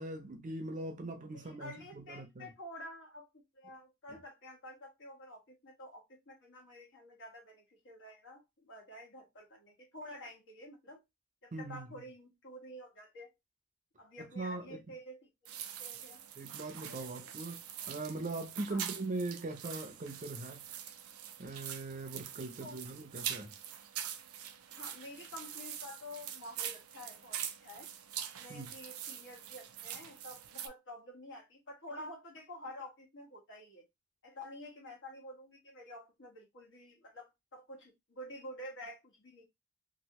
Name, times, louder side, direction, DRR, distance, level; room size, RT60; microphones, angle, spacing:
voice 1, 0.0-2.5 11.5-12.0 14.4-14.8 16.4-20.7 21.4-23.5 28.5-28.7, right 2 dB, 35° right, 0.6 m, -41 dB
voice 2, 1.3-11.0 11.4-13.3 14.0-16.2 16.8-17.3 18.7-18.9 22.6-22.9 24.7-27.9 28.3-33.9 34.2-39.4, left 1 dB, 60° left, 1.5 m, -50 dB
sound 1, 15.5-30.7, right 9 dB, 85° right, 0.5 m, -44 dB
3.1 x 2.6 x 2.8 m
head